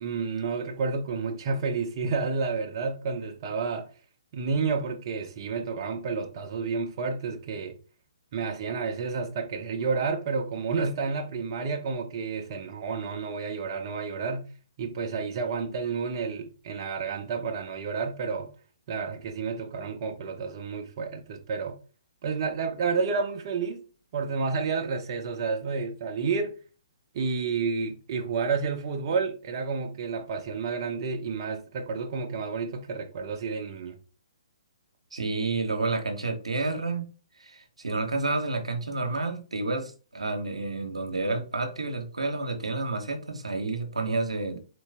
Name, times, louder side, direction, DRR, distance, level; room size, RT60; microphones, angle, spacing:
voice 1, 0.0-3.9 4.3-7.8 8.3-14.5 14.8-18.5 18.9-21.7 22.2-23.8 24.1-26.6 27.1-34.0, right 4 dB, 45° right, 0.8 m, -30 dB
voice 2, 35.1-37.1 37.4-44.6, right 3 dB, 85° right, 1.0 m, -30 dB
4.1 x 3.1 x 3.4 m
hypercardioid pair, 135°, 3 cm